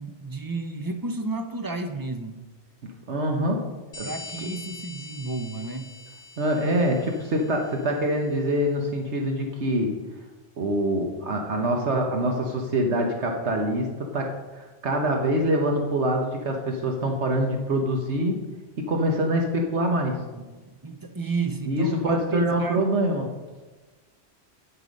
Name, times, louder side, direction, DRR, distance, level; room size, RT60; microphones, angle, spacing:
voice 1, 0.0-2.4 4.0-5.9 20.2-22.8, right 3 dB, 20° right, 6 dB, 0.7 m, -32 dB
voice 2, 3.1-3.6 4.0-4.1 4.4-4.5 6.4-10.0 10.6-13.9 14.1-18.4 18.8-20.2 21.6-23.3, right 1 dB, 70° right, 2 dB, 1.4 m, -25 dB
sound 1, 3.9-8.2, left 3 dB, 50° left, 1.3 m, -43 dB
9.9 x 9.0 x 5.2 m, 1.2 s
omnidirectional pair, 1.2 m